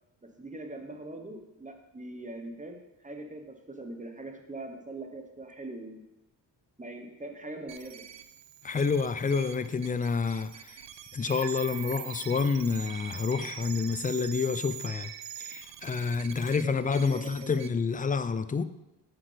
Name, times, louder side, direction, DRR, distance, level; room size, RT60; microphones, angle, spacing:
voice 1, 0.2-2.8 3.0-6.0 6.8-8.0 16.2-17.6, right 2 dB, 15° right, 4 dB, 1.1 m, -42 dB
sound 1, 7.7-17.7, right 10 dB, 70° right, 0.6 m, -43 dB
voice 2, 8.6-10.8 11.1-15.1 15.4-18.6, left 5 dB, 20° left, 13 dB, 0.3 m, -28 dB
7.5 x 6.2 x 3.4 m, 0.94 s
cardioid pair, 70°, 45 cm